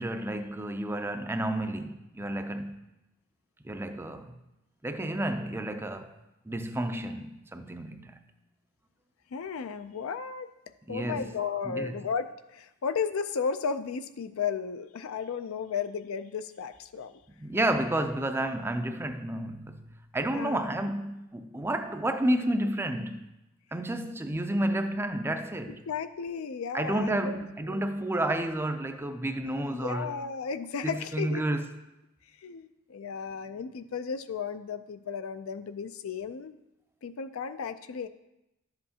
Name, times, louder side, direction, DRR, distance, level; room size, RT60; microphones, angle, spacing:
voice 1, 0.0-2.8 3.6-4.3 4.8-6.1 6.5-8.1 10.9-11.3 11.7-11.9 17.4-19.9 20.1-23.2 23.7-25.8 26.7-30.1 30.8-31.6, right 1 dB, 10° right, 0.4 m, -31 dB
voice 2, 9.3-10.5 10.9-17.2 20.3-20.7 25.9-27.4 27.7-27.9 29.4-31.6 32.4-36.6 37.0-38.1, left 6 dB, 75° left, 0.4 m, -34 dB
11.5 x 7.7 x 2.8 m
head